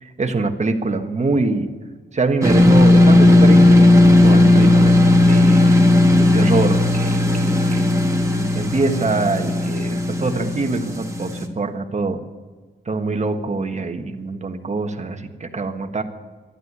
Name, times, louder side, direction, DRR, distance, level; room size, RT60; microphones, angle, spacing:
voice 1, 0.0-1.7 2.1-5.0 5.3-5.7 6.1-7.8 8.5-12.2 12.8-16.0, right 3 dB, 35° right, 6 dB, 1.4 m, -24 dB
sound 1, 2.4-11.5, left 1 dB, 15° right, 1.8 m, -14 dB
13.0 x 11.5 x 9.6 m, 1.4 s
wide cardioid pair, 110°, 20 cm